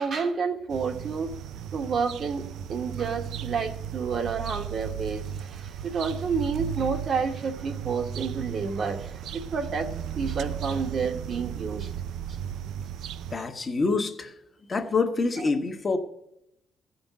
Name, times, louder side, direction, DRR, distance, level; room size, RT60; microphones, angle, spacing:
voice 1, 0.0-1.3 1.7-2.4 2.7-9.9 10.2-11.9 13.3-13.4, right 5 dB, 55° right, 1.2 m, -30 dB
sound 1, 0.7-13.4, right 9 dB, 80° right, 0.4 m, -35 dB
voice 2, 13.3-14.3 14.7-16.0, left 4 dB, 35° left, 1.2 m, -26 dB
14.5 x 5.2 x 8.1 m
cardioid pair, 90°, 0 cm